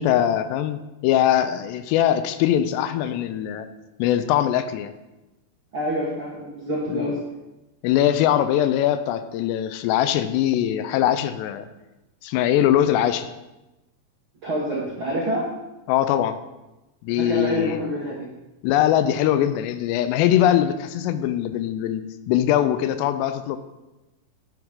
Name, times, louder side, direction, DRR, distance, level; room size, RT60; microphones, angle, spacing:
voice 1, 0.0-3.7 4.0-4.9 6.9-7.1 7.8-11.7 12.2-13.3 15.9-16.4 17.0-17.9 18.6-23.6, left 11 dB, 85° left, 11 dB, 2.7 m, -22 dB
voice 2, 5.7-7.2 14.4-15.4 17.1-18.2, equal, 85° right, -6 dB, 1.1 m, -27 dB
10.5 x 7.8 x 3.7 m, 1.0 s
omnidirectional pair, 5.0 m